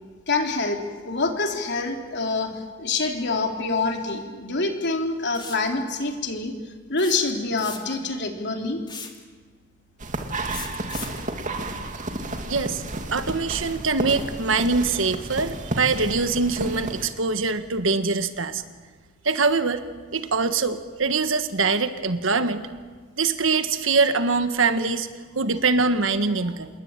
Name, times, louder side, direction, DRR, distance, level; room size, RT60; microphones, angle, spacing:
voice 1, 0.3-6.5 6.9-8.8, left 3 dB, 60° left, 3 dB, 3.5 m, -26 dB
sound 1, 5.3-5.7 7.0-8.1 8.9-9.2 10.5-11.2, left 5 dB, 25° left, 2.6 m, -37 dB
sound 2, 10.0-17.1, right 2 dB, 40° right, 2.5 m, -32 dB
voice 2, 12.5-12.8 13.1-18.6 19.2-19.8 20.1-22.6 23.2-25.1 25.3-26.7, right 4 dB, 70° right, 9 dB, 1.6 m, -23 dB
28.0 x 21.5 x 9.0 m, 1.5 s
head